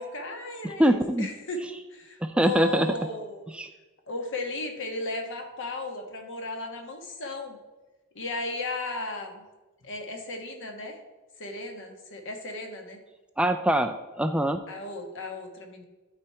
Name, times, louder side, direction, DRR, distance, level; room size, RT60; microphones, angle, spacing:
voice 1, 0.0-3.5 4.1-7.6 8.1-9.4 9.8-11.0 11.4-13.0 14.7-15.8, left 2 dB, 60° left, 3 dB, 1.4 m, -35 dB
voice 2, 0.6-1.3 2.2-2.9 3.5-3.7 13.4-14.6, equal, 5° right, 7 dB, 0.3 m, -24 dB
12.0 x 4.3 x 4.8 m, 1.1 s
head